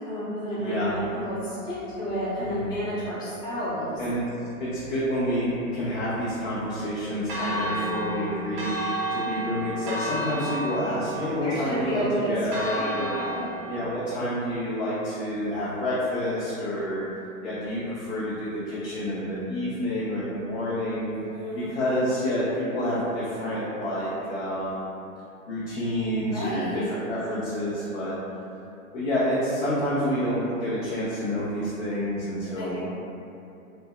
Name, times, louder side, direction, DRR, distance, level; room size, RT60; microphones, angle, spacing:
voice 1, 0.0-4.0 11.4-13.4 21.3-21.8 26.3-26.9 32.5-32.8, equal, 10° left, -12 dB, 0.5 m, -31 dB
voice 2, 0.6-1.0 2.4-2.8 4.0-4.2 4.6-8.8 9.1-13.2 13.7-17.0 17.4-21.1 21.5-25.0 25.5-28.1 28.9-32.8, equal, 50° left, -9 dB, 0.6 m, -28 dB
Church bell, 7.3-13.8, right 1 dB, 45° right, 0.5 m, -32 dB
3.3 x 2.0 x 2.2 m, 2.7 s
hypercardioid pair, 125°, 44 cm